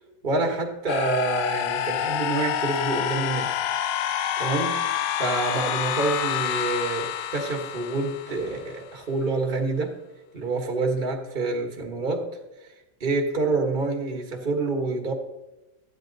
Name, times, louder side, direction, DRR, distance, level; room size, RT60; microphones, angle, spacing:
voice 1, 0.2-3.6 4.4-4.8 5.2-10.0 10.3-12.3 12.6-12.7 13.0-15.1, right 3 dB, 30° right, 1 dB, 1.3 m, -27 dB
sound 1, 0.9-8.8, left 10 dB, 75° left, 1.3 m, -28 dB
14.0 x 9.4 x 3.9 m, 1.0 s
omnidirectional pair, 2.0 m